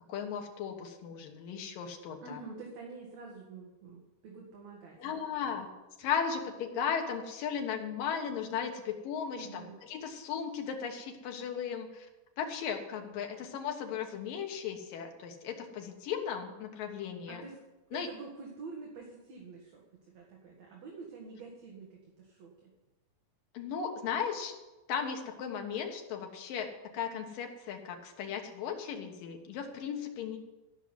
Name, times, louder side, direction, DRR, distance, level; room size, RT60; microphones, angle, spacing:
voice 1, 0.1-2.4 5.0-5.7 6.0-12.1 12.4-17.4 17.9-18.1 23.5-24.5 24.9-30.4, left 7 dB, 85° left, 3 dB, 3.2 m, -36 dB
voice 2, 2.2-5.3 9.3-9.8 17.3-17.6 17.9-22.7, right 4 dB, 60° right, -1 dB, 2.8 m, -47 dB
15.0 x 6.2 x 9.6 m, 1.1 s
omnidirectional pair, 3.8 m